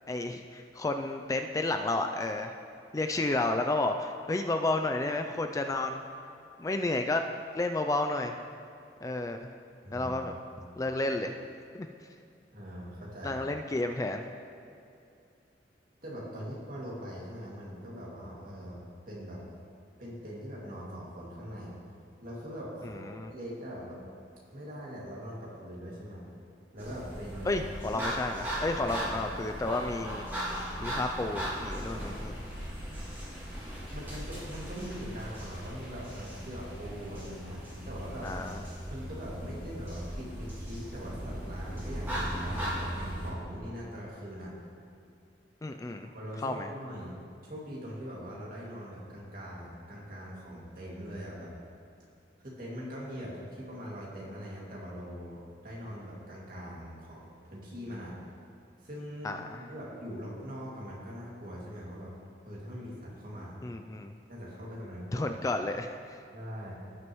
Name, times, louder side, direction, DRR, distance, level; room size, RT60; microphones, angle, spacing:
voice 1, 0.1-2.5 2.9-6.0 6.6-7.2 7.5-8.3 9.0-9.5 9.9-10.3 10.8-11.4 11.7-11.9 13.2-14.2 22.8-23.3 27.4-30.2 30.8-32.4 38.2-38.6 45.6-46.1 46.4-46.7 59.2-59.6 63.6-64.1 65.1-66.2, left 2 dB, 20° left, 6 dB, 0.3 m, -31 dB
voice 2, 12.5-13.4 16.0-18.8 19.1-19.4 20.0-21.7 22.2-24.0 24.5-26.2 26.7-27.6 27.9-28.1 33.9-38.3 38.9-44.5 46.1-47.1 47.4-51.5 52.4-58.1 58.8-62.1 62.4-63.5 64.3-65.3 66.3-66.7, equal, 50° right, -5 dB, 2.3 m, -42 dB
sound 1, 26.8-43.3, equal, 15° right, 2.4 m, -38 dB
17.0 x 6.3 x 3.1 m, 2.5 s
head